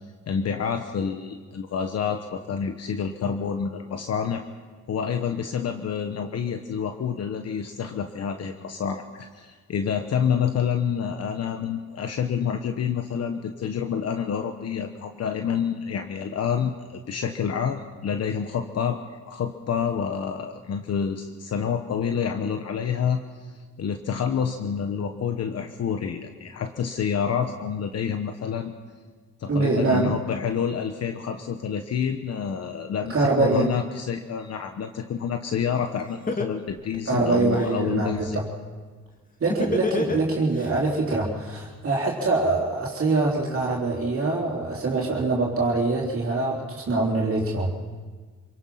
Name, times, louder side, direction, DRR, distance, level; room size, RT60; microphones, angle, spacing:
voice 1, 0.3-4.4 4.9-19.0 19.3-28.7 29.4-38.4, left 7 dB, 55° left, 7 dB, 1.2 m, -28 dB
voice 2, 29.5-30.2 33.1-33.7 37.1-38.5 39.4-47.8, right 3 dB, 45° right, -4 dB, 3.7 m, -24 dB
Laughter, 35.7-35.8 36.3-37.7 39.5-40.7, left 3 dB, 25° left, 2.2 m, -27 dB
26.5 x 18.0 x 5.8 m, 1.5 s
cardioid pair, 90°, 30 cm